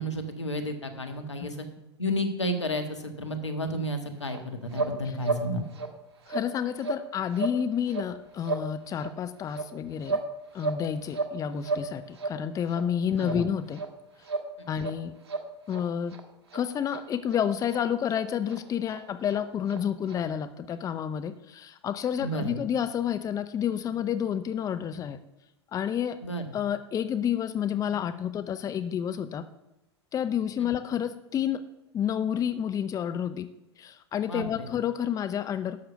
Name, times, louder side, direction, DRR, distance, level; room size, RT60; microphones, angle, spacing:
voice 1, 0.0-1.6 2.0-5.6 13.1-13.4 22.2-22.7 26.2-26.6 34.3-34.7, equal, 85° left, 6 dB, 1.7 m, -32 dB
sound 1, 4.3-4.4 4.7-5.0 5.2-5.4 5.7-5.9 6.2-6.5 6.8-7.0 7.3-7.6 7.9-8.1 8.4-8.7 9.0-9.1 9.5-10.3 10.6-11.3 11.6-11.9 12.1-12.4 12.7-12.8 13.2-13.4 13.7-13.9 14.2-14.5 14.8-15.0 15.3-15.8 16.1-16.2 16.5-16.6 16.9-17.0 17.3-17.4 17.7-17.8 18.1-18.2 18.5-18.6 18.9-19.0 19.3-19.4 19.7-19.8 20.1-20.2, right 3 dB, 70° right, 1.8 m, -32 dB
voice 2, 6.3-10.2 10.5-13.8 14.7-15.1 15.7-16.2 16.5-25.2 25.7-26.2 26.5-29.5 30.1-31.6 31.9-33.5 33.8-35.8, left 9 dB, 25° left, 11 dB, 0.7 m, -30 dB
11.5 x 6.8 x 6.9 m, 0.93 s
figure-of-eight pair, 95°, 15 cm